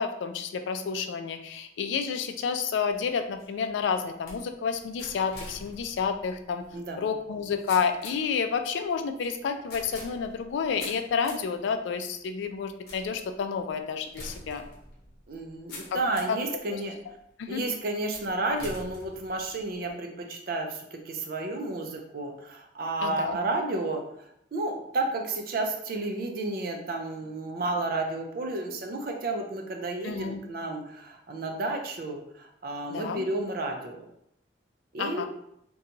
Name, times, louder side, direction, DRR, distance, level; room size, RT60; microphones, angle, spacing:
voice 1, 0.0-6.6 7.0-14.6 15.9-16.0 16.3-16.4 16.7-16.8 17.4-17.6 23.0-23.4 30.0-30.4 32.9-33.2 35.0-35.3, left 6 dB, 85° left, 7 dB, 0.3 m, -30 dB
sound 1, 2.9-16.5 17.0-17.5 18.1-19.9, left 1 dB, 55° left, 0.8 m, -47 dB
voice 2, 6.7-7.1 15.3-16.9 17.5-24.0 24.5-34.0 34.9-35.3, right 2 dB, 55° right, 3 dB, 0.4 m, -31 dB
2.8 x 2.2 x 2.6 m, 0.75 s
head